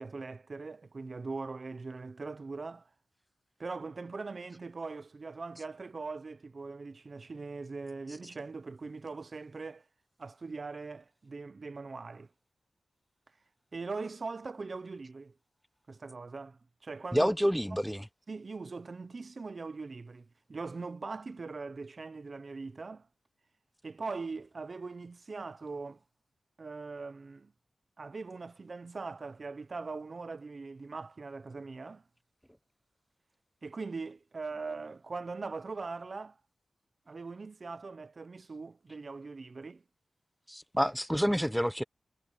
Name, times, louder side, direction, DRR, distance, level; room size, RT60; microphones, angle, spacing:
voice 1, 0.0-2.9 3.6-9.8 10.2-12.3 13.7-15.3 15.9-17.3 17.7-17.8 18.3-23.1 23.8-26.0 26.6-27.5 28.0-32.0 33.6-36.4 37.1-39.8, right 4 dB, 50° right, 0.9 m, -41 dB
voice 2, 17.1-18.0 40.5-41.8, equal, ahead, 0.7 m, -28 dB
wide cardioid pair, 85°, 0 cm